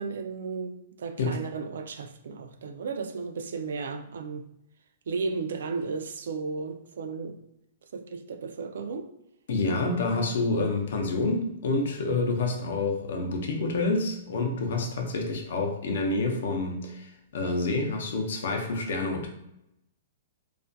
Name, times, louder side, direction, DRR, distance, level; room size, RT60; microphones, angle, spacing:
voice 1, 0.0-4.4 5.1-7.4 7.9-9.1, right 4 dB, 75° right, 0.3 m, -34 dB
voice 2, 9.5-19.3, left 3 dB, 70° left, 0.5 m, -28 dB
2.4 x 2.2 x 2.6 m
hypercardioid pair, 165°, 0 cm